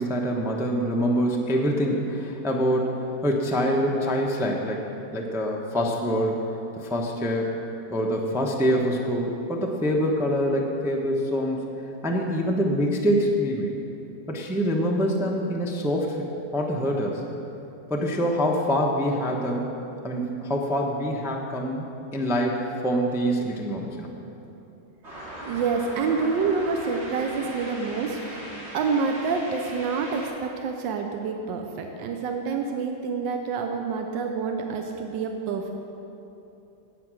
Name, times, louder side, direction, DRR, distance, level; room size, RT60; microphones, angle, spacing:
voice 1, 0.0-6.4 6.8-7.5 7.9-11.6 12.0-13.8 14.3-16.3 16.5-17.2 17.9-19.7 20.0-21.9 22.1-24.1, equal, 5° right, -1 dB, 0.6 m, -25 dB
sound 1, 25.0-30.3, equal, 35° right, 3.1 m, -39 dB
voice 2, 25.4-28.5 28.7-35.7, right 5 dB, 85° right, 3 dB, 1.5 m, -27 dB
17.0 x 5.8 x 6.2 m, 2.9 s
omnidirectional pair, 2.0 m